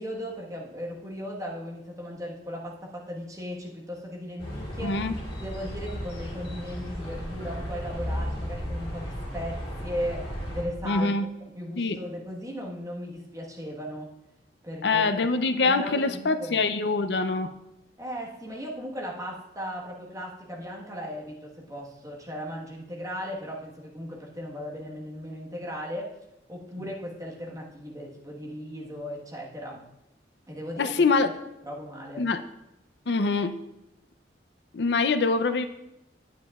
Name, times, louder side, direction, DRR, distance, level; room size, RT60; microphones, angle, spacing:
voice 1, 0.0-5.0 5.4-11.1 11.5-14.1 14.6-15.1 15.6-16.7 18.0-26.1 26.5-29.8 30.5-31.0 31.6-32.3, equal, 20° right, -3 dB, 1.3 m, -37 dB
sound 1, 4.4-10.6, equal, 35° left, 3.2 m, -35 dB
voice 2, 4.8-5.1 10.8-11.2 11.8-12.0 14.8-17.5 30.8-31.3 32.2-32.4 33.1-33.6 34.7-35.7, left 3 dB, 70° left, 9 dB, 0.5 m, -24 dB
9.8 x 9.3 x 2.4 m, 0.90 s
head